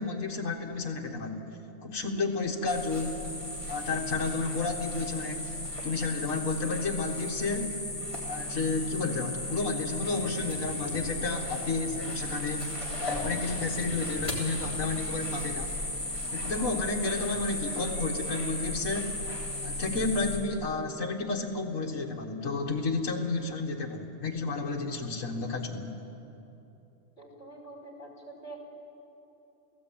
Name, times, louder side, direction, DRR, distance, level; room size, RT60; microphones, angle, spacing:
voice 1, 0.0-1.5 1.8-3.3 3.7-5.5 5.8-7.8 8.3-12.7 13.0-15.7 16.3-19.2 19.6-25.9, left 3 dB, 65° left, 0 dB, 2.0 m, -31 dB
sound 1, 2.7-20.4, left 1 dB, 20° left, 3.7 m, -36 dB
voice 2, 27.2-28.6, right 2 dB, 50° left, 1 dB, 5.6 m, -46 dB
29.5 x 16.5 x 8.7 m, 2.9 s
omnidirectional pair, 1.4 m